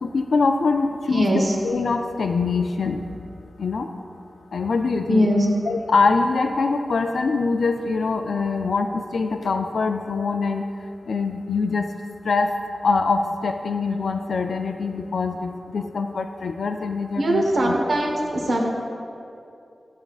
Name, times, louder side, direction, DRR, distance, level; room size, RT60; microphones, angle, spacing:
voice 1, 0.0-1.3 1.6-3.0 3.6-3.9 4.5-5.3 5.7-10.6 11.1-11.9 12.3-12.5 12.8-17.7, left 4 dB, 85° left, 6 dB, 0.3 m, -23 dB
voice 2, 1.1-1.6 5.1-5.5 17.2-18.6, equal, 70° right, 0 dB, 1.0 m, -21 dB
11.0 x 6.7 x 2.4 m, 2.6 s
wide cardioid pair, 125°, 0 cm